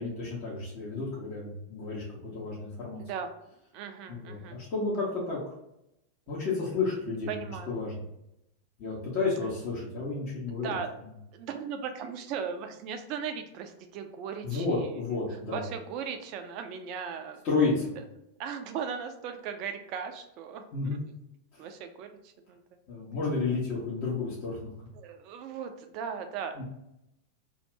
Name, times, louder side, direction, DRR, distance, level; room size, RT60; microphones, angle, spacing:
voice 1, 0.0-3.0 4.1-5.5 6.3-7.4 7.7-7.9 8.8-10.7 14.4-15.6 17.4-17.9 20.7-21.0 21.5-21.7 22.9-24.7 26.5-26.6, left 3 dB, 40° left, -7 dB, 1.0 m, -31 dB
voice 2, 3.0-3.3 3.7-4.6 7.3-7.7 10.5-10.9 11.3-14.9 15.5-17.4 18.4-21.0 21.6-22.6 24.9-26.6, right 7 dB, 40° right, 6 dB, 0.4 m, -37 dB
2.7 x 2.5 x 3.2 m, 0.83 s
figure-of-eight pair, 90°, 0 cm